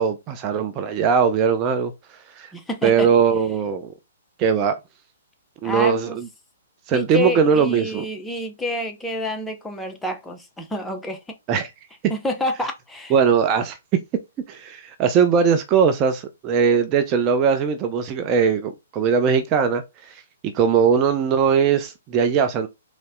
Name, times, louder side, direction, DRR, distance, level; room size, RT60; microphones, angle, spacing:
voice 1, 0.0-1.9 2.4-2.5 2.8-3.9 4.4-4.7 5.6-6.3 6.9-8.0 11.5-11.7 13.1-13.8 14.5-22.7, right 6 dB, 30° right, 0.6 m, -20 dB
voice 2, 2.5-3.1 5.6-6.2 6.9-11.2 12.1-13.1, left 1 dB, 5° left, 0.8 m, -28 dB
4.1 x 3.2 x 3.7 m
figure-of-eight pair, 125°, 0 cm